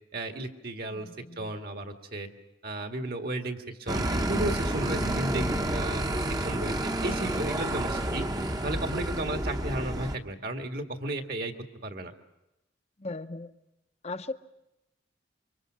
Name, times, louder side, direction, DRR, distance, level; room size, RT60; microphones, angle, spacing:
voice 1, 0.1-1.1 1.4-2.3 2.6-8.3 8.6-11.5 11.8-12.1, right 1 dB, 55° right, 5 dB, 1.8 m, -34 dB
voice 2, 1.0-1.5 4.9-5.7 13.0-13.5 14.0-14.3, left 2 dB, 35° left, 10 dB, 0.8 m, -38 dB
sound 1, 3.9-10.1, right 1 dB, 20° right, 0.9 m, -30 dB
28.0 x 24.5 x 6.3 m, 0.91 s
head